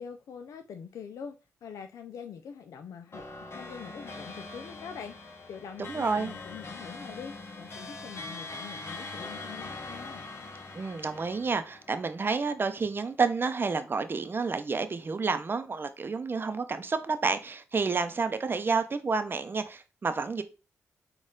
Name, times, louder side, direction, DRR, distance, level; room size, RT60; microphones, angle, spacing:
voice 1, 0.0-1.4 1.6-10.3, left 7 dB, 75° left, 0.4 m, -44 dB
sound 1, 3.1-12.8, left 3 dB, 50° left, 0.9 m, -42 dB
voice 2, 5.9-6.3 10.7-20.4, right 4 dB, 40° right, 0.6 m, -29 dB
4.3 x 2.3 x 3.7 m
supercardioid pair, 50°, 6 cm